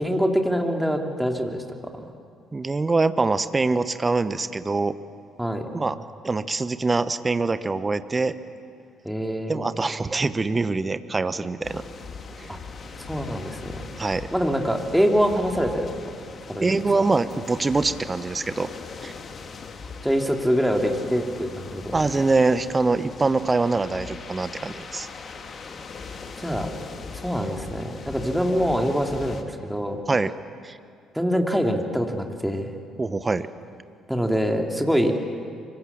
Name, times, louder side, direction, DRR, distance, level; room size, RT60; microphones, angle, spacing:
voice 1, 0.0-1.6 5.4-5.7 9.0-9.7 12.5-12.6 13.1-13.8 14.3-16.1 16.5-16.7 20.0-21.9 26.4-26.7 27.2-30.0 31.1-32.7 34.1-35.2, equal, ahead, 2 dB, 3.2 m, -24 dB
voice 2, 2.5-5.0 5.7-6.0 6.2-8.4 9.5-11.8 12.4-12.5 14.0-14.3 16.6-18.7 19.0-19.1 21.9-25.1 30.1-30.3 30.6-30.8 33.0-33.5, right 3 dB, 25° right, 13 dB, 1.1 m, -24 dB
sound 1, 11.6-29.4, left 4 dB, 45° left, 2.1 m, -40 dB
24.5 x 23.5 x 7.4 m, 2.3 s
figure-of-eight pair, 50°, 0 cm